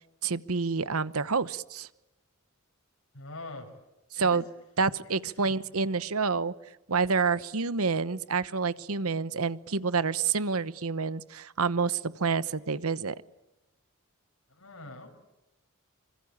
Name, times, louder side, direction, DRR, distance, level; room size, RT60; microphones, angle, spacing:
voice 1, 0.2-1.9 4.1-4.4 4.8-6.5 6.9-13.1, right 5 dB, 80° right, 16 dB, 1.1 m, -28 dB
voice 2, 3.1-3.7 4.1-4.4 5.4-5.5 14.5-15.1, left 2 dB, 80° left, 3 dB, 6.3 m, -43 dB
26.5 x 25.0 x 8.8 m, 0.95 s
head